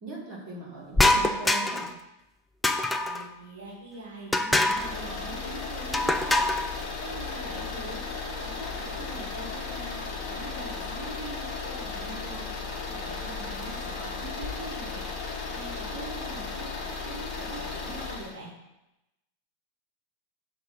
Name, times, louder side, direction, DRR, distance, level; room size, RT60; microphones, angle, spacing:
voice 1, 0.0-1.9, right 3 dB, 35° right, -4 dB, 2.0 m, -39 dB
voice 2, 0.7-1.6 3.0-6.4 7.0-8.0 8.3-9.9 10.3-12.4 12.8-15.0 15.4-18.5, right 2 dB, 65° right, -5 dB, 1.2 m, -43 dB
sound 1, 0.9-1.9 2.6-3.3 4.3-4.9 5.9-6.7, left 2 dB, 5° left, 0.4 m, -24 dB
sound 2, 4.7-18.3, left 4 dB, 35° left, 1.2 m, -35 dB
6.0 x 2.9 x 5.5 m, 0.94 s
figure-of-eight pair, 90°, 0 cm